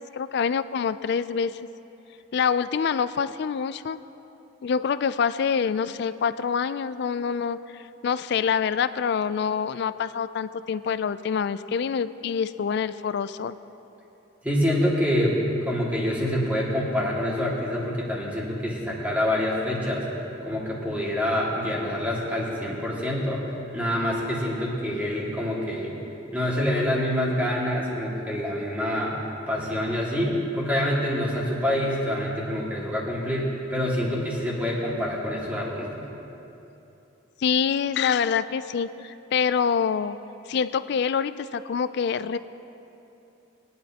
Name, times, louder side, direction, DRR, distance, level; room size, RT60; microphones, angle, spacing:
voice 1, 0.1-1.5 2.3-4.0 4.6-7.6 8.0-13.6 37.4-40.2 40.5-42.4, left 6 dB, 55° left, 14 dB, 0.3 m, -26 dB
voice 2, 14.4-20.1 20.4-26.0 26.3-29.2 29.5-36.1, left 1 dB, 10° right, -5 dB, 2.1 m, -26 dB
21.5 x 10.5 x 2.9 m, 2.9 s
head